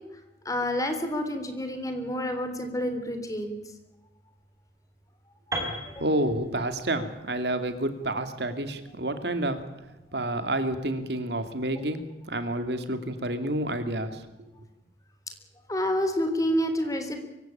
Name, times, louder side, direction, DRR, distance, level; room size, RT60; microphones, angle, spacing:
voice 1, 0.5-3.6 5.9-6.0 15.7-17.2, equal, 20° left, 7 dB, 3.5 m, -28 dB
Piano, 5.5-9.4, right 1 dB, 15° right, 4.9 m, -38 dB
voice 2, 6.0-9.6 10.1-12.0 12.3-14.2, right 1 dB, 70° right, 9 dB, 2.5 m, -29 dB
24.5 x 16.5 x 8.7 m, 1.0 s
head